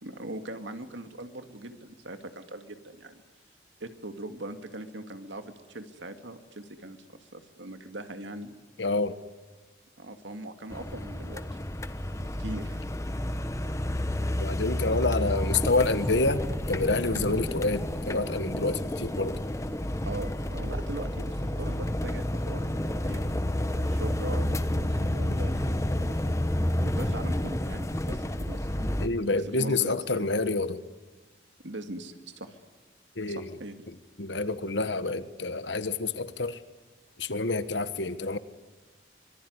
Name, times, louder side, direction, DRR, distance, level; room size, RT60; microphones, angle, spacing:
voice 1, 0.0-3.2 3.8-8.5 10.0-11.6 12.2-12.8 17.1-17.3 20.0-23.2 23.7-26.3 26.8-28.9 29.3-30.2 31.6-32.6 33.3-33.8, right 1 dB, 90° right, 7 dB, 2.4 m, -41 dB
voice 2, 8.8-9.1 14.4-16.4 16.7-19.4 29.0-30.8 33.2-33.5 33.9-36.6 37.2-38.4, left 3 dB, 80° left, 12 dB, 1.4 m, -28 dB
sound 1, 10.7-29.1, left 1 dB, 15° left, 1.1 m, -30 dB
25.5 x 23.5 x 9.8 m, 1.2 s
head